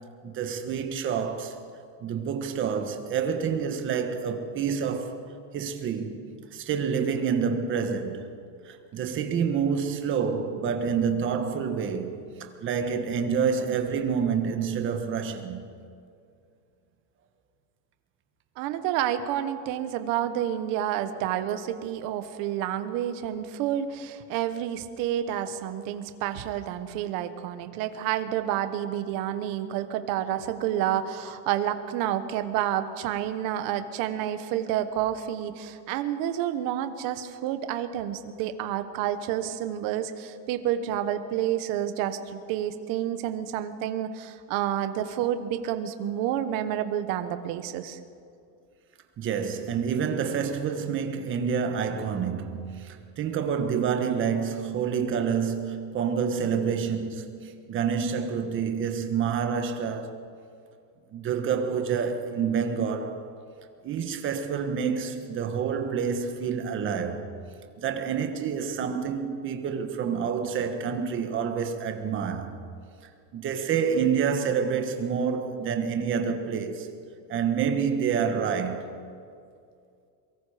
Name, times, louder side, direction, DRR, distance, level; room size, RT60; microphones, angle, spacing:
voice 1, 0.2-1.6 2.0-5.2 5.5-6.2 6.5-8.3 8.6-15.6 49.2-60.2 61.1-63.3 63.8-67.3 67.8-72.6 73.3-76.9 77.3-78.9, right 6 dB, 25° right, 1.3 m, -28 dB
voice 2, 18.6-48.0, right 11 dB, 40° right, 1.2 m, -29 dB
23.5 x 23.0 x 5.0 m
cardioid pair, 175°, 50 cm